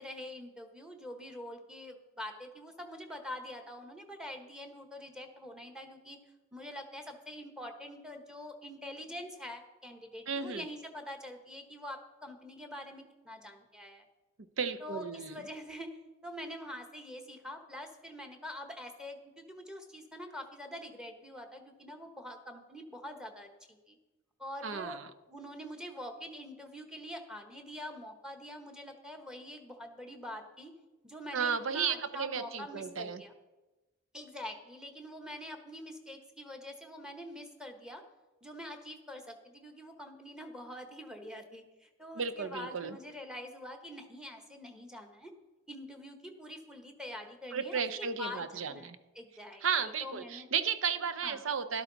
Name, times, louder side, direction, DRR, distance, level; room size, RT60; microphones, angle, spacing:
voice 1, 0.0-6.2 6.5-14.0 14.8-24.0 24.4-25.0 25.3-30.7 31.0-33.3 34.1-38.0 38.4-45.3 45.7-48.9 49.1-50.5 51.2-51.4, left 1 dB, 5° right, 5 dB, 1.1 m, -45 dB
voice 2, 10.3-10.6 14.6-15.4 24.6-25.1 31.3-33.2 42.1-43.0 47.5-49.0 49.6-51.8, right 6 dB, 70° right, 12 dB, 0.7 m, -34 dB
12.5 x 12.0 x 4.0 m, 1.1 s
head